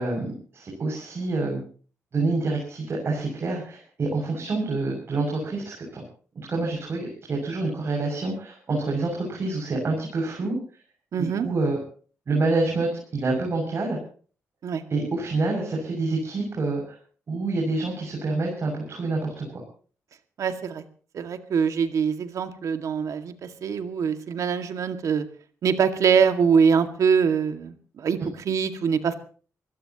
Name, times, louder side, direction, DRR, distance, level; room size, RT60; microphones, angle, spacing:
voice 1, 0.0-1.6 2.1-6.0 6.4-10.6 11.2-11.8 12.3-14.0 14.9-17.0 17.3-19.6, right 3 dB, 45° right, 0 dB, 6.9 m, -27 dB
voice 2, 11.1-11.5 14.6-14.8 20.4-20.8 21.1-25.3 25.6-28.2 28.5-29.2, right 6 dB, 65° right, 8 dB, 2.1 m, -23 dB
24.5 x 16.5 x 3.0 m, 0.41 s
cardioid pair, 110°, 6 cm